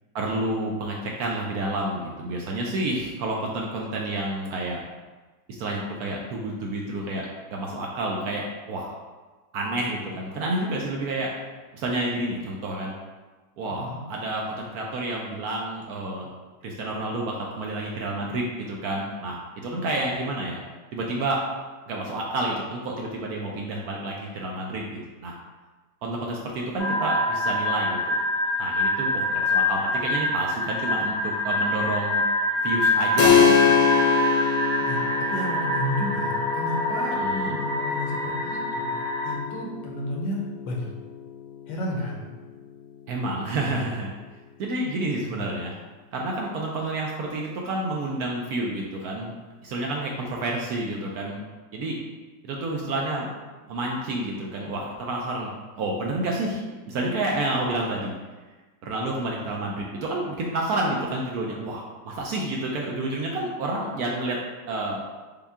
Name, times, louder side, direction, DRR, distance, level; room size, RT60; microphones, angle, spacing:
voice 1, 0.1-4.8 5.6-8.9 9.5-11.3 11.7-12.9 13.6-16.3 16.6-20.6 20.9-21.4 21.9-25.3 26.0-28.2 28.6-32.2 32.6-33.8 37.1-37.6 43.1-44.1 44.6-45.7 46.1-49.3 49.6-51.4 51.7-52.0 52.4-53.3 53.7-55.5 55.8-58.1 58.8-64.4 64.7-65.0, right 2 dB, 70° right, -1 dB, 0.9 m, -29 dB
voice 2, 13.7-14.0 34.8-38.9 39.2-40.9 41.7-42.3 45.3-45.4, left 1 dB, 80° left, -1 dB, 1.5 m, -32 dB
sound 1, 26.8-39.3, left 1 dB, 50° right, 2.1 m, -25 dB
Keyboard (musical), 33.2-43.4, left 7 dB, 65° left, 1.0 m, -26 dB
5.3 x 2.3 x 3.5 m, 1.3 s
omnidirectional pair, 2.0 m